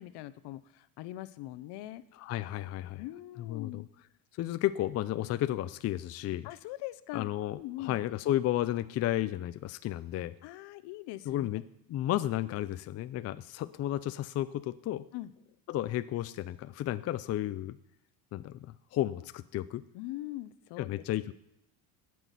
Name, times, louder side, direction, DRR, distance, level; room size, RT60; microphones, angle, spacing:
voice 1, 0.0-2.0 3.0-3.9 6.4-8.0 10.4-11.5 15.1-15.3 19.9-21.0, left 16 dB, 70° left, 15 dB, 0.9 m, -42 dB
voice 2, 2.2-3.0 3.4-3.9 4.4-6.5 7.1-10.3 11.3-11.6 11.9-15.1 15.7-17.8 18.3-19.8 20.8-21.3, left 13 dB, 35° left, 13 dB, 0.4 m, -33 dB
17.5 x 6.2 x 9.2 m, 0.80 s
cardioid pair, 145°, 43 cm